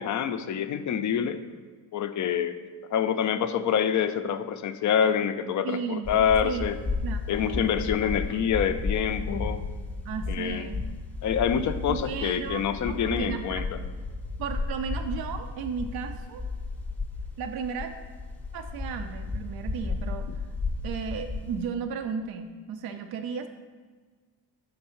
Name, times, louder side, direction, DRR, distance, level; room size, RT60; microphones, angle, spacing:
voice 1, 0.0-1.4 1.9-2.6 2.9-6.8 7.3-9.6 10.3-10.7 11.2-13.6, left 8 dB, 40° left, 10 dB, 0.4 m, -26 dB
voice 2, 5.6-6.7 7.0-7.7 8.0-8.2 10.0-10.8 11.9-13.7 14.4-16.4 17.4-18.0 18.5-20.3 20.8-23.5, right 6 dB, 50° right, 7 dB, 0.5 m, -34 dB
sound 1, 6.0-21.7, left 3 dB, 5° left, 0.7 m, -34 dB
5.3 x 3.9 x 5.7 m, 1.5 s
supercardioid pair, 75°, 48 cm